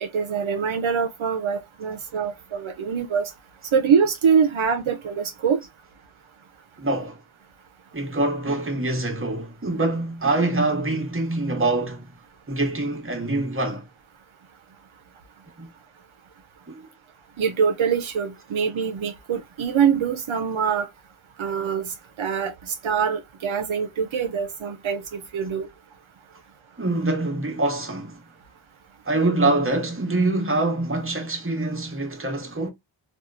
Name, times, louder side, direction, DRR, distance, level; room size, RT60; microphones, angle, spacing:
voice 1, 0.0-3.3 3.7-5.6 17.4-20.9 21.4-21.9 22.2-25.7, right 6 dB, 80° right, 0.6 m, -24 dB
voice 2, 6.8-7.2 7.9-12.1 12.5-13.9 15.6-15.7 16.7-16.9 26.8-28.2 29.0-32.7, right 2 dB, 25° right, 0.9 m, -25 dB
2.8 x 2.3 x 2.3 m
wide cardioid pair, 45°, 47 cm